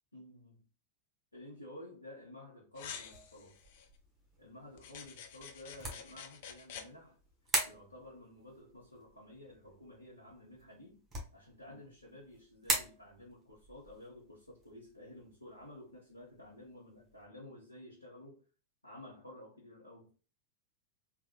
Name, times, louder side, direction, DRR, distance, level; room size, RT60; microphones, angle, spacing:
voice 1, 0.1-0.7 1.3-3.6 4.4-7.2 7.6-11.0 11.3-18.4 18.8-20.1, left 1 dB, 85° left, 0.9 m, -52 dB
sound 1, 2.8-3.9 4.8-6.9, left 8 dB, 50° left, 0.5 m, -48 dB
sound 2, 3.1-17.3, right 2 dB, 15° right, 1.2 m, -43 dB
3.3 x 2.5 x 2.8 m
figure-of-eight pair, 90°, 0 cm